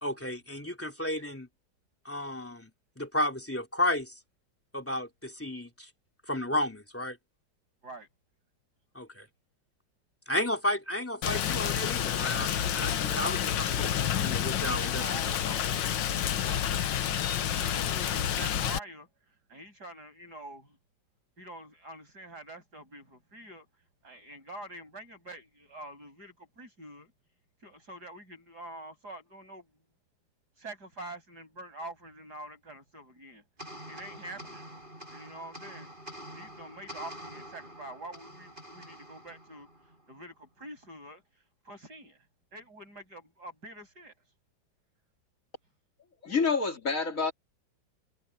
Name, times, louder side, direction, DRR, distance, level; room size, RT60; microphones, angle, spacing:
voice 1, 0.0-1.5 2.1-2.7 3.0-4.1 4.7-5.9 6.3-7.2 9.0-9.3 10.3-15.0, left 1 dB, 5° left, 3.3 m, -32 dB
Rain, 11.2-18.8, left 10 dB, 75° left, 1.7 m, -29 dB
voice 2, 14.6-16.0 16.4-19.1 19.5-20.8 21.4-23.7 24.0-27.1 27.6-29.7 30.6-33.4 33.9-34.7 35.1-35.9 36.3-39.7 40.1-41.2 41.7-42.2 42.5-44.1, right 1 dB, 55° right, 8.5 m, -46 dB
sound 1, 33.6-40.2, equal, 25° right, 7.5 m, -47 dB
voice 3, 46.2-47.3, left 5 dB, 45° left, 3.5 m, -27 dB
omnidirectional pair, 2.0 m